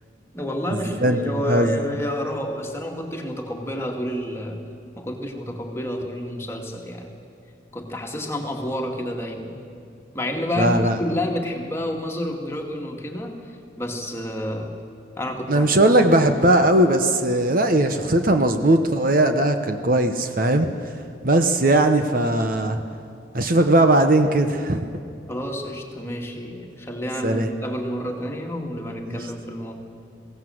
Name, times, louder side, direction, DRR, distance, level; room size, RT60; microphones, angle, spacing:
voice 1, 0.3-4.6 5.0-7.1 7.7-9.6 10.1-14.8 15.2-15.7 16.2-16.5 25.3-29.7, equal, 15° left, 1 dB, 2.1 m, -29 dB
voice 2, 10.6-11.0 15.5-20.7 21.2-22.8 23.3-24.8 27.2-27.5 29.1-29.2, right 1 dB, 45° right, 7 dB, 1.0 m, -19 dB
21.0 x 17.0 x 7.8 m, 2.4 s
head